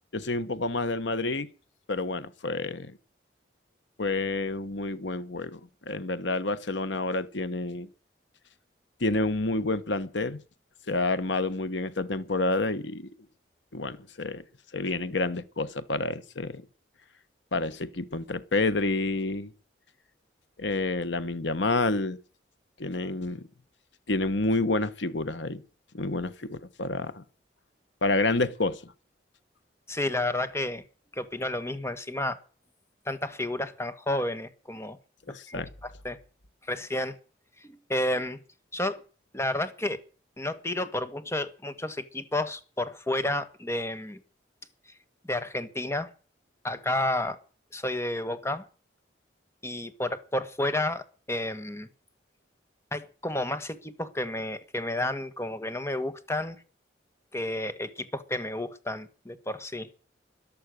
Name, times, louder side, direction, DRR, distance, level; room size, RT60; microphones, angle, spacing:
voice 1, 0.1-1.5 1.9-2.9 4.0-5.6 5.8-7.9 9.0-10.4 10.9-13.1 13.7-14.4 14.7-16.6 17.5-19.5 20.6-22.2 22.8-23.5 24.1-25.6 25.9-27.2 28.0-28.9 35.3-35.7, left 2 dB, 80° left, 1.3 m, -29 dB
voice 2, 29.9-30.8 31.1-32.4 33.1-35.0 35.5-35.6 36.0-36.2 36.7-37.2 37.6-38.4 38.7-39.0 39.3-40.0 40.4-44.2 45.2-46.1 46.6-47.4 47.7-48.6 49.6-51.9 52.9-56.6 57.3-59.9, left 1 dB, 15° left, 1.5 m, -31 dB
14.5 x 11.0 x 6.4 m
head